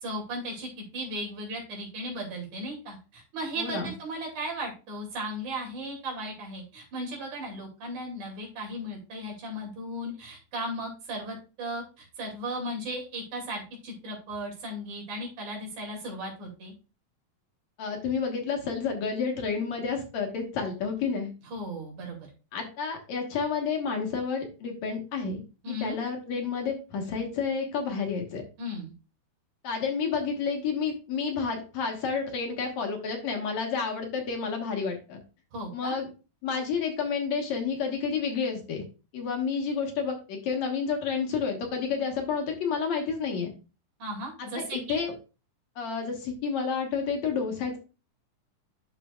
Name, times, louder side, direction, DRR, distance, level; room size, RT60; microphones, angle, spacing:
voice 1, 0.0-16.7 21.5-22.3 25.6-26.0 28.6-28.9 35.5-36.0 44.0-45.1, right 1 dB, 70° right, 0 dB, 3.9 m, -36 dB
voice 2, 3.6-3.9 17.8-21.3 22.5-25.4 25.7-28.4 29.6-35.2 35.7-36.1 36.4-38.8 39.1-43.5 44.4-45.1 45.8-47.8, left 5 dB, 65° left, 2 dB, 2.4 m, -30 dB
12.0 x 4.9 x 2.3 m, 0.32 s
omnidirectional pair, 3.6 m